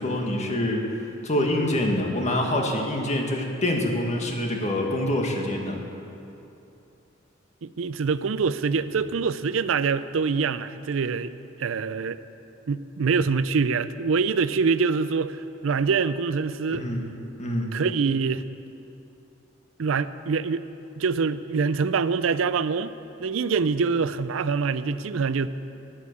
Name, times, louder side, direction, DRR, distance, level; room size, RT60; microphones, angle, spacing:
voice 1, 0.0-5.8 16.7-17.0 17.4-17.7, left 1 dB, 35° left, 1 dB, 1.7 m, -26 dB
voice 2, 7.6-11.3 11.6-12.2 12.7-16.9 17.7-18.4 19.8-20.6 21.0-22.9 23.2-25.5, right 5 dB, 80° right, 14 dB, 0.5 m, -25 dB
12.0 x 10.5 x 8.4 m, 2.8 s
head